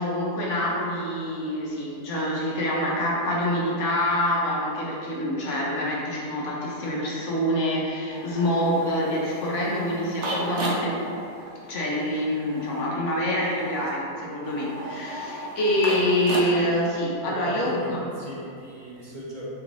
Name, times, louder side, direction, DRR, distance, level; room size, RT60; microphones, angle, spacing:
voice 1, 0.0-11.0 11.6-18.1, equal, 80° left, -4 dB, 1.2 m, -26 dB
sound 1, 8.1-16.9, right 1 dB, 70° right, 1.1 m, -35 dB
voice 2, 17.2-19.5, equal, 45° right, -6 dB, 0.8 m, -37 dB
6.2 x 3.1 x 2.6 m, 2.5 s
omnidirectional pair, 1.3 m